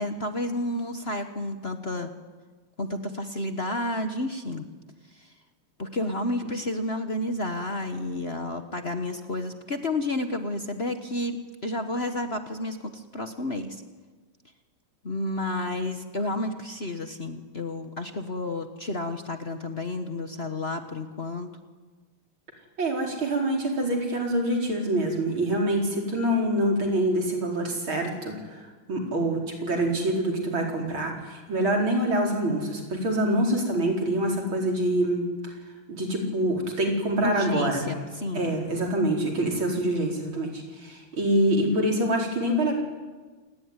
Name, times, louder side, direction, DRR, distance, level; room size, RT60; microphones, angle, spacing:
voice 1, 0.0-2.1 2.8-4.6 5.8-11.4 11.6-13.8 15.0-21.5 37.2-38.5, left 1 dB, 35° left, 7 dB, 1.4 m, -31 dB
voice 2, 22.8-28.3 28.9-35.2 35.9-37.9 38.3-42.8, right 1 dB, 75° right, 1 dB, 5.3 m, -25 dB
27.5 x 19.0 x 9.8 m, 1.4 s
omnidirectional pair, 2.2 m